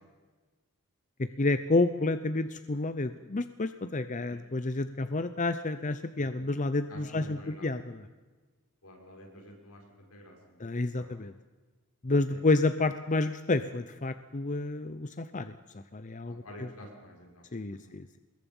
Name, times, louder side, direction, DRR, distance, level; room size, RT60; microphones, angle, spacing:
voice 1, 1.2-8.1 10.6-11.3 12.0-16.7 17.5-18.2, left 2 dB, 35° left, 11 dB, 0.7 m, -30 dB
voice 2, 6.2-6.5 6.9-7.7 8.8-9.8 10.1-10.6 11.0-11.1 12.3-12.4 16.3-17.9, equal, 80° left, 0 dB, 6.3 m, -49 dB
25.0 x 21.5 x 5.5 m, 1.3 s
head